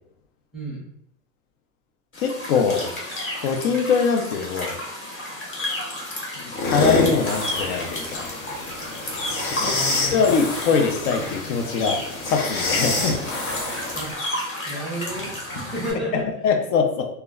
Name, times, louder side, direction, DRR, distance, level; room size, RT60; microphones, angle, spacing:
voice 1, 0.5-0.8 9.5-10.3 13.0-13.2 13.9-14.1 14.7-16.3, equal, ahead, -6 dB, 0.5 m, -32 dB
sound 1, 2.1-15.9, left 1 dB, 30° left, 0.9 m, -33 dB
voice 2, 2.2-2.9 3.4-4.8 6.4-8.3 9.6-9.7 10.1-13.1 16.1-17.1, left 5 dB, 70° left, 4 dB, 0.6 m, -22 dB
sound 2, 6.5-14.1, left 2 dB, 90° left, 0.9 m, -27 dB
2.2 x 2.1 x 3.5 m, 0.74 s
supercardioid pair, 140°, 41 cm